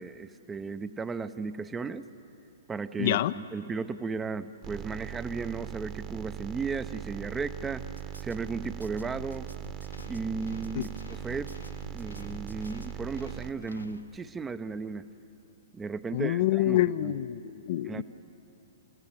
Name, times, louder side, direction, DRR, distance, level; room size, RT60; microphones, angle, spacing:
voice 1, 0.0-2.0 2.7-7.8 8.2-9.5 10.1-11.6 11.9-15.1 15.7-17.1 17.8-18.0, right 4 dB, 10° right, 13 dB, 0.6 m, -35 dB
voice 2, 3.0-3.3 10.8-10.9 16.1-18.0, left 14 dB, 45° left, 15 dB, 0.5 m, -27 dB
sound 1, 4.6-13.5, right 10 dB, 30° right, 1.1 m, -40 dB
sound 2, 7.8-13.1, equal, 85° right, 1.0 m, -49 dB
sound 3, 9.8-14.6, left 2 dB, 80° left, 1.2 m, -50 dB
30.0 x 17.0 x 7.4 m, 3.0 s
figure-of-eight pair, 110°, 0 cm